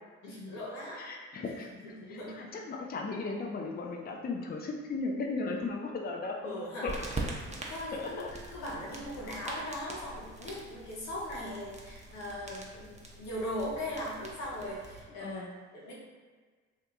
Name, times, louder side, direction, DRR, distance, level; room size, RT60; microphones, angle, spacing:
voice 1, 0.2-1.0 1.4-1.5 1.8-2.6 6.4-6.9 7.4-8.3 8.5-15.9, left 1 dB, 80° left, -5 dB, 0.8 m, -39 dB
voice 2, 1.0-6.4 6.8-7.0 7.9-8.3 15.2-15.5, left 3 dB, 30° left, 1 dB, 0.5 m, -36 dB
sound 1, 6.9-15.0, right 2 dB, 25° right, 0.7 m, -43 dB
2.7 x 2.4 x 3.5 m, 1.5 s
hypercardioid pair, 45°, 30 cm